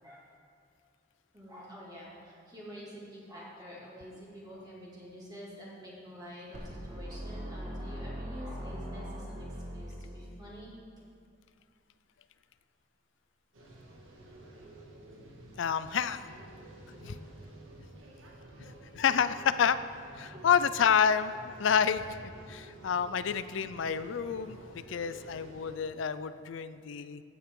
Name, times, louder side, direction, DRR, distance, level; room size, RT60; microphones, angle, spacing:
voice 1, 1.3-10.7 18.1-18.2, equal, 20° right, -6 dB, 2.4 m, -47 dB
sound 1, 6.5-10.5, equal, 40° right, 1.5 m, -41 dB
sound 2, 13.5-25.7, right 1 dB, 90° right, 1.7 m, -51 dB
voice 2, 15.6-16.3 17.0-17.2 18.9-19.8 20.2-22.0 22.5-27.2, left 7 dB, 65° left, 13 dB, 0.4 m, -29 dB
15.0 x 8.5 x 3.8 m, 2.2 s
head